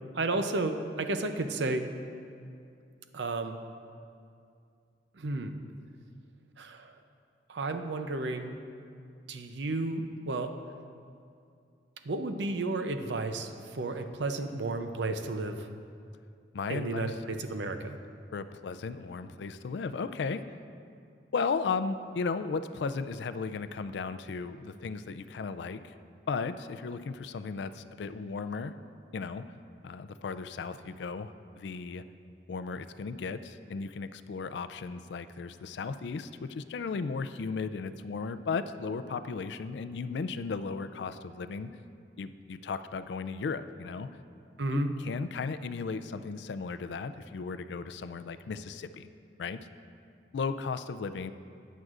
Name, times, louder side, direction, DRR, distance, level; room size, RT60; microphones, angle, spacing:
voice 1, 0.1-1.9 3.1-3.6 5.1-5.6 6.6-7.0 7.5-8.5 9.3-10.6 12.0-15.7 16.7-18.0 44.6-44.9, right 2 dB, 85° right, 8 dB, 0.6 m, -32 dB
voice 2, 16.5-17.1 18.3-20.4 21.3-25.9 26.3-28.7 29.1-29.4 29.8-32.0 32.5-41.7 42.2-44.1 44.7-49.1 49.4-49.7 50.3-51.3, left 4 dB, 75° left, 11 dB, 0.4 m, -35 dB
14.0 x 9.2 x 2.5 m, 2.4 s
head